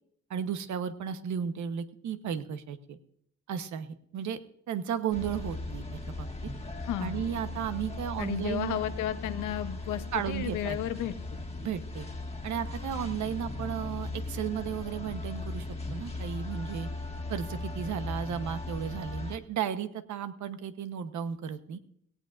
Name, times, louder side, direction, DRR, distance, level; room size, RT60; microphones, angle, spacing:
voice 1, 0.3-3.0 3.5-4.4 4.7-6.3 7.0-8.8 10.1-10.8 11.6-12.0 12.4-16.9 17.3-21.8, right 8 dB, 70° right, 9 dB, 1.1 m, -34 dB
sound 1, 5.1-19.4, left 2 dB, 20° left, 1.8 m, -38 dB
voice 2, 6.8-7.3 8.2-11.4, left 12 dB, 85° left, 9 dB, 0.9 m, -33 dB
17.5 x 17.0 x 2.6 m, 0.69 s
cardioid pair, 90°, 30 cm